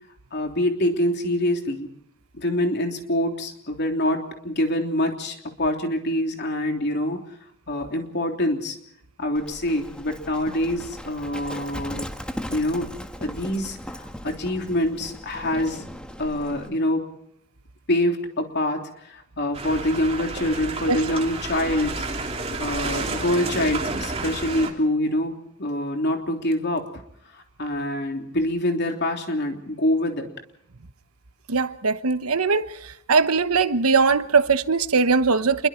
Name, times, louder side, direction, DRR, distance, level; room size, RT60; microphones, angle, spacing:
voice 1, 0.3-1.9 2.3-7.2 7.7-8.8 9.2-12.1 12.5-12.9 13.2-15.8 16.2-17.1 17.9-22.0 22.6-26.9 27.3-30.3, left 1 dB, 50° left, 3.4 m, -25 dB
Livestock farm animals working animals, 9.3-16.7, equal, 5° left, 1.5 m, -38 dB
sound 1, 19.5-24.7, right 3 dB, 30° right, 3.0 m, -30 dB
voice 2, 31.5-35.7, right 4 dB, 85° right, 1.1 m, -20 dB
28.0 x 22.5 x 4.5 m
head